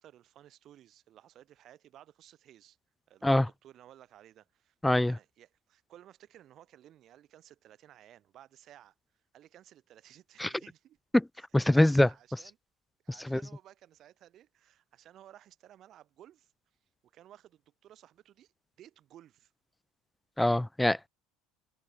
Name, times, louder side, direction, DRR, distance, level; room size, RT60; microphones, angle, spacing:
voice 1, 0.0-2.8 3.1-8.9 9.3-11.0 11.4-12.6 13.0-16.5 17.0-18.5 18.8-19.5, right 12 dB, 45° right, 6.1 m, -57 dB
voice 2, 4.8-5.2 10.4-10.5 11.1-11.2 11.5-12.1 13.3-13.4 20.4-21.1, left 1 dB, 5° left, 0.5 m, -23 dB
supercardioid pair, 120°, 0 cm